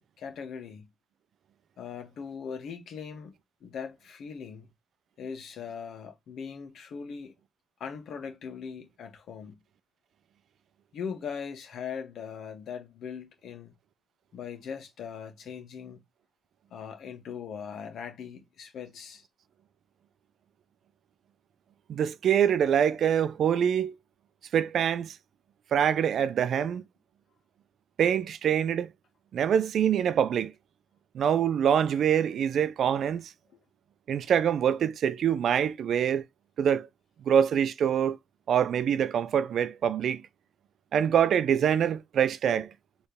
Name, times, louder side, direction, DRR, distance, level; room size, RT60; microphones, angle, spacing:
voice 1, 0.2-0.9 1.8-3.3 3.6-4.7 5.2-7.3 7.8-9.6 10.9-13.7 14.3-16.0 16.7-19.2 33.5-33.6, left 6 dB, 75° left, 1.6 m, -40 dB
voice 2, 21.9-23.9 24.5-25.2 25.7-26.8 28.0-28.9 29.3-30.5 31.1-33.3 34.1-36.2 36.6-36.9 37.3-38.2 38.5-40.2 40.9-42.7, right 8 dB, 70° right, 0.5 m, -25 dB
4.3 x 3.3 x 3.4 m
cardioid pair, 95°, 0 cm